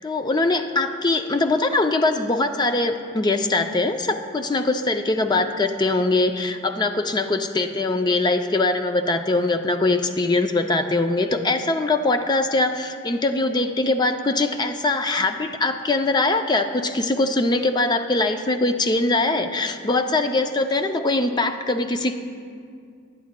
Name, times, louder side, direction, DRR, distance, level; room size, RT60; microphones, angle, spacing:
voice 1, 0.0-22.1, left 2 dB, 20° left, 7 dB, 0.4 m, -22 dB
16.5 x 10.5 x 2.2 m, 2.2 s
head